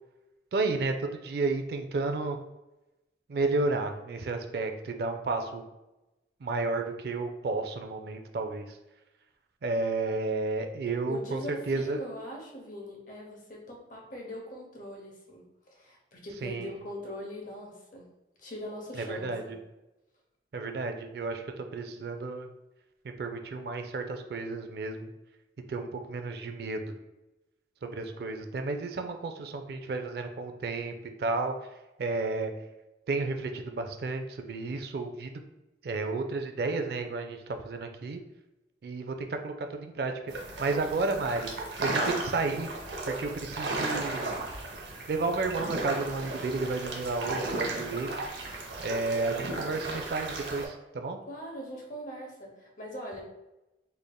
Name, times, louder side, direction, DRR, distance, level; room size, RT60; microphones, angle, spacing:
voice 1, 0.5-2.4 3.3-5.6 6.4-8.8 9.6-11.4 11.7-12.0 16.4-16.7 19.0-19.4 20.5-22.5 23.2-25.1 25.7-26.8 27.8-31.5 32.0-32.5 33.1-35.4 35.8-38.2 38.8-41.5 41.8-42.7 43.1-44.4 45.1-48.2 48.8-51.2, right 3 dB, 55° right, 6 dB, 0.3 m, -32 dB
voice 2, 11.1-18.1 18.4-19.5 51.2-53.2, equal, 45° left, 0 dB, 0.8 m, -41 dB
sound 1, 40.3-50.7, right 2 dB, 75° right, 0.7 m, -35 dB
3.6 x 3.3 x 2.2 m, 0.98 s
head